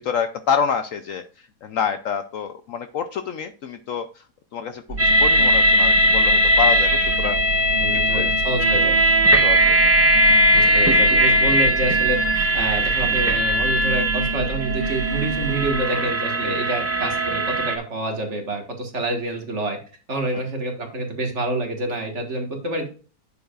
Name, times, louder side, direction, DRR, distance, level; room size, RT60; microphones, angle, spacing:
voice 1, 0.0-4.2 4.5-7.4 7.9-8.3 9.4-9.8 20.3-20.4, left 7 dB, 70° left, 9 dB, 0.8 m, -27 dB
sound 1, 4.9-15.8, right 3 dB, 70° right, 2.7 m, -30 dB
sound 2, 5.0-17.8, equal, 20° right, 0.4 m, -19 dB
voice 2, 7.8-9.0 10.5-19.8 20.1-22.9, right 2 dB, 45° right, 3 dB, 1.8 m, -27 dB
9.4 x 7.1 x 2.4 m, 0.37 s
omnidirectional pair, 1.7 m